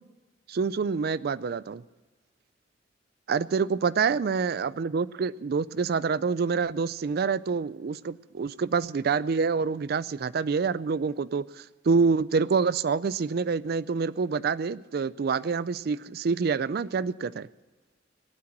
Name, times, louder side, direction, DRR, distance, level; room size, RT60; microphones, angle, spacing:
voice 1, 0.5-1.8 3.3-17.5, right 5 dB, 55° right, 17 dB, 0.4 m, -27 dB
18.5 x 8.7 x 7.5 m, 1.2 s
head